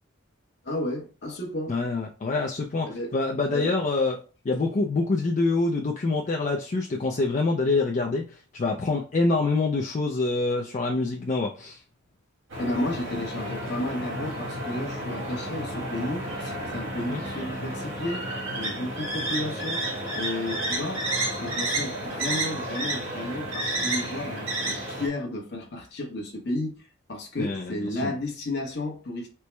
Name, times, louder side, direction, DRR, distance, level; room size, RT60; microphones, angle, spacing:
voice 1, 0.6-1.8 2.8-3.2 3.5-3.8 12.6-19.9 20.1-29.3, left 1 dB, 55° left, 1.0 m, -33 dB
voice 2, 1.7-4.2 4.4-11.8 17.1-17.2 27.4-28.1, left 3 dB, 35° left, 0.4 m, -26 dB
sound 1, 12.5-25.1, right 1 dB, 75° right, 1.7 m, -31 dB
4.5 x 2.0 x 3.2 m
head